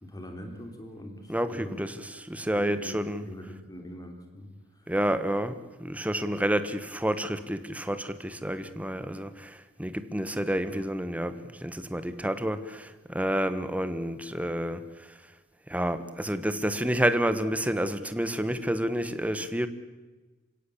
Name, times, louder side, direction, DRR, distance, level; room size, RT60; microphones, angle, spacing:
voice 1, 0.0-1.8 2.5-3.0 3.2-4.5 10.6-10.8, equal, 20° left, 3.2 m, -43 dB
voice 2, 1.3-3.3 4.9-14.8 15.7-19.7, equal, 5° right, 1.2 m, -29 dB
27.5 x 16.5 x 8.6 m
head